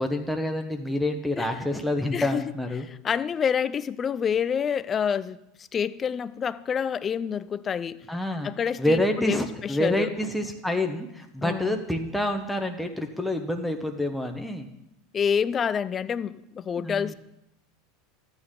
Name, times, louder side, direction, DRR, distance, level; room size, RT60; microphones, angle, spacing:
voice 1, 0.0-2.9 8.1-8.5 8.8-14.7 16.8-17.1, left 1 dB, ahead, 3 dB, 0.9 m, -27 dB
voice 2, 2.1-2.4 3.0-5.4 5.7-8.1 8.4-10.1 11.4-11.8 15.1-17.1, left 7 dB, 30° left, 16 dB, 0.4 m, -27 dB
12.5 x 8.8 x 3.7 m, 0.84 s
supercardioid pair, 110°, 0 cm